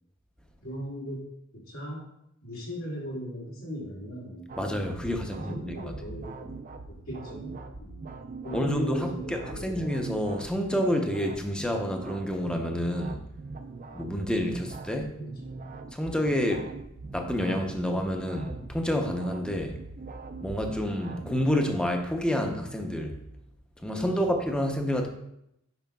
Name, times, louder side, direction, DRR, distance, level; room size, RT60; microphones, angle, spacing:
voice 1, 0.6-2.1 2.4-4.5 5.4-6.5 6.8-8.1 8.4-9.9 15.2-15.6 23.9-24.1, equal, 80° left, 2.3 m, -38 dB
sound 1, 4.5-21.5, right 3 dB, 40° right, 0.4 m, -42 dB
voice 2, 4.6-5.9 8.5-13.2 13.9-15.2 15.9-16.7 17.1-19.8 20.4-23.2 23.8-25.1, equal, 5° left, 0.6 m, -29 dB
9.1 x 5.6 x 2.3 m
head